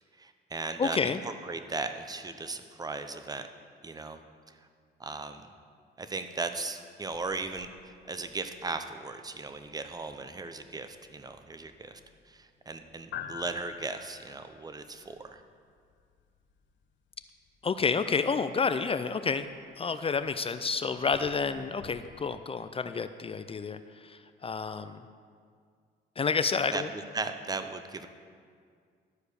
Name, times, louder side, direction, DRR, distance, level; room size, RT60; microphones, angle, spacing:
voice 1, 0.2-3.5 3.8-4.2 5.0-5.4 6.0-12.0 12.3-15.4 26.7-28.1, right 3 dB, 20° right, 8 dB, 0.7 m, -37 dB
voice 2, 0.8-1.2 17.6-19.5 19.8-25.0 26.2-26.9, left 5 dB, 30° left, 11 dB, 0.4 m, -29 dB
sound 1, 7.1-22.3, left 8 dB, 70° left, 0.6 m, -50 dB
12.5 x 4.9 x 6.6 m, 2.1 s
cardioid pair, 90°, 20 cm